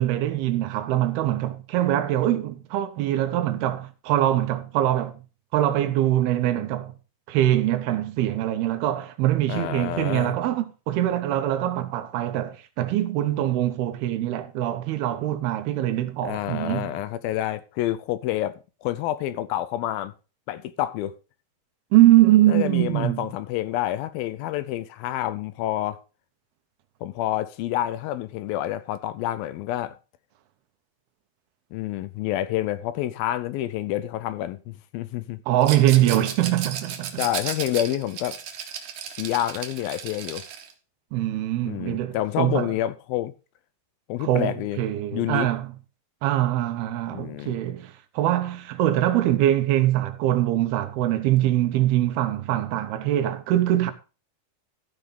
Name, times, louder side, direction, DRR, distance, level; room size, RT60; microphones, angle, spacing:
voice 1, 0.0-5.2 5.5-6.9 7.3-16.9 21.9-23.3 35.5-37.2 41.1-42.7 44.2-45.7 46.2-53.9, right 13 dB, 80° right, 2.9 m, -23 dB
voice 2, 9.5-10.4 16.2-18.6 18.8-20.1 20.5-21.2 22.5-26.0 27.0-30.0 31.7-35.4 36.0-36.1 37.2-38.4 39.1-40.4 41.7-43.3 44.1-44.8 45.1-45.5 47.1-47.6, left 13 dB, 80° left, 2.3 m, -28 dB
Rattle, 35.6-40.7, right 8 dB, 60° right, 2.3 m, -34 dB
14.0 x 5.4 x 5.3 m
omnidirectional pair, 4.5 m